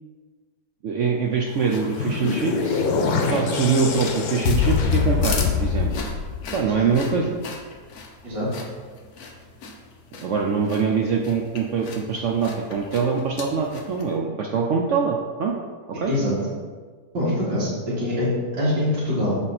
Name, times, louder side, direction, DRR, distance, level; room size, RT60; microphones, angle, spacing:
voice 1, 0.8-2.9 3.3-6.0 6.5-7.4 10.2-15.5 16.0-16.1, right 5 dB, 65° right, 0 dB, 0.7 m, -24 dB
sound 1, 1.5-14.2, left 4 dB, 65° left, 1.3 m, -40 dB
sound 2, 1.6-6.9, left 5 dB, 90° left, 1.4 m, -24 dB
voice 2, 16.1-16.4 17.1-17.7 18.0-19.4, left 1 dB, 85° right, -11 dB, 2.4 m, -24 dB
7.0 x 5.5 x 4.1 m, 1.5 s
omnidirectional pair, 1.8 m